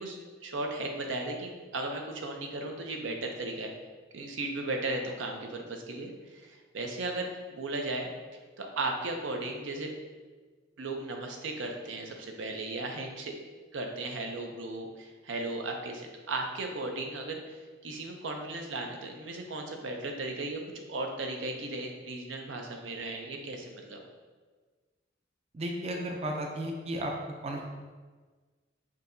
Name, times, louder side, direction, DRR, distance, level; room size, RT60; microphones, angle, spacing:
voice 1, 0.0-3.7 4.1-8.1 8.6-9.9 10.8-13.3 13.7-24.0, right 2 dB, 80° right, 2 dB, 0.6 m, -36 dB
voice 2, 25.5-27.1 27.4-27.7, right 1 dB, 35° right, 1 dB, 0.4 m, -34 dB
6.1 x 2.8 x 2.6 m, 1.4 s
head